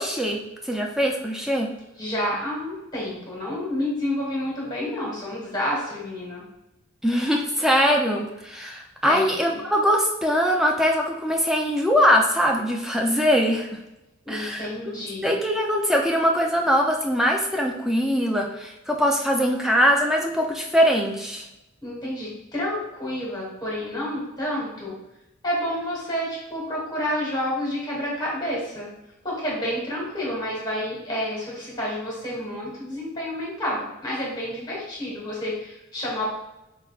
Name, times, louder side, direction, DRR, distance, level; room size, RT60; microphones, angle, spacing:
voice 1, 0.0-1.7 7.0-13.8 14.3-14.7 15.2-21.5, equal, ahead, 0 dB, 0.4 m, -22 dB
voice 2, 2.0-6.4 9.0-9.6 14.2-15.3 21.8-24.9 25.4-28.9 29.2-36.2, left 1 dB, 20° left, -5 dB, 1.2 m, -29 dB
4.3 x 3.6 x 2.3 m, 0.91 s
head